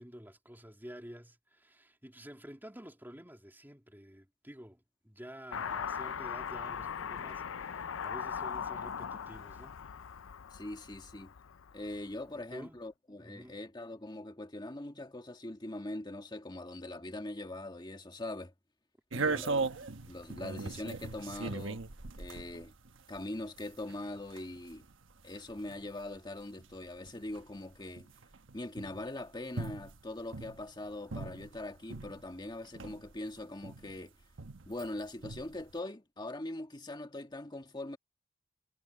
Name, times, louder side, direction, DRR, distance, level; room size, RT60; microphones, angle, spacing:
voice 1, 0.0-9.8 12.3-12.8 13.2-13.6 19.2-19.5, equal, 10° right, 2.8 m, -50 dB
Car passing by / Accelerating revving vroom, 5.5-12.1, left 7 dB, 80° left, 0.5 m, -40 dB
voice 2, 10.5-11.3 11.7-18.5 19.1-19.7 20.1-21.8 22.1-22.7 23.1-24.8 25.2-28.1 28.5-34.1 34.7-38.0, left 1 dB, 20° left, 1.6 m, -42 dB
sound 1, 19.1-32.3 32.6-34.9 35.2-35.7, right 3 dB, 70° right, 1.2 m, -39 dB
head